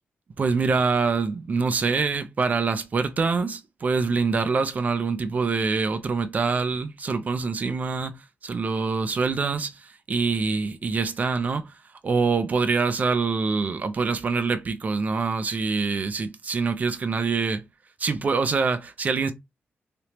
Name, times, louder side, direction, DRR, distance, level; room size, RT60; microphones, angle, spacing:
voice 1, 0.4-8.2 8.4-11.7 12.0-17.6 18.0-19.3, right 4 dB, 40° right, 0.5 m, -25 dB
3.4 x 2.9 x 2.9 m
wide cardioid pair, 165°, 4 cm